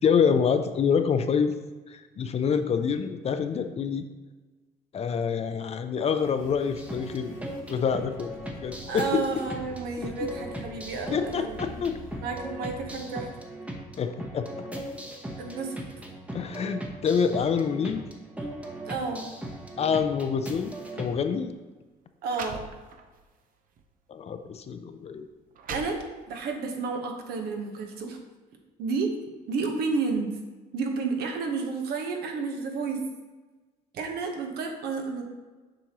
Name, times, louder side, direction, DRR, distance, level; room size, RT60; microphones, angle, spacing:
voice 1, 0.0-1.5 1.9-4.1 4.9-7.4 7.7-8.3 8.6-9.1 10.0-10.3 11.1-12.0 14.0-14.7 16.3-18.1 19.8-21.5 24.1-25.3, left 6 dB, 40° left, 9 dB, 0.5 m, -26 dB
sound 1, 6.1-13.0, left 2 dB, 85° left, 1.9 m, -47 dB
sound 2, 6.8-21.2, right 1 dB, 5° right, 0.9 m, -39 dB
voice 2, 8.9-11.8 12.2-13.3 15.4-15.8 18.9-19.3 22.2-22.6 25.7-26.0 26.3-28.2 28.8-29.1 29.5-30.4 30.7-33.0 33.9-35.2, right 4 dB, 70° right, 3 dB, 1.1 m, -31 dB
sound 3, 21.0-21.2 21.9-22.0 22.3-23.2 23.8-23.9 24.7-24.8 25.3-26.5, right 5 dB, 55° right, 0.7 m, -41 dB
7.5 x 5.2 x 2.9 m, 1.3 s
cardioid pair, 110°, 17 cm